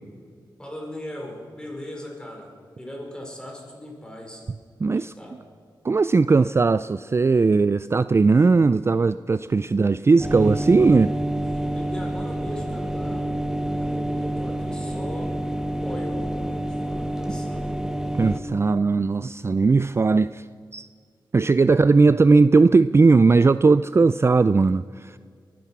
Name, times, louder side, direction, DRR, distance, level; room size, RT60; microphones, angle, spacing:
voice 1, 0.6-4.5 4.9-5.4 9.8-10.0 11.5-13.3 13.6-17.8, left 1 dB, 10° left, 5.1 m, -39 dB
voice 2, 4.8-5.1 5.8-11.1 18.2-20.5 20.7-20.9 21.3-25.2, right 4 dB, 30° right, 0.3 m, -18 dB
sound 1, 10.2-18.4, right 1 dB, 5° right, 1.2 m, -28 dB
22.5 x 10.0 x 6.0 m
cardioid pair, 60°, 8 cm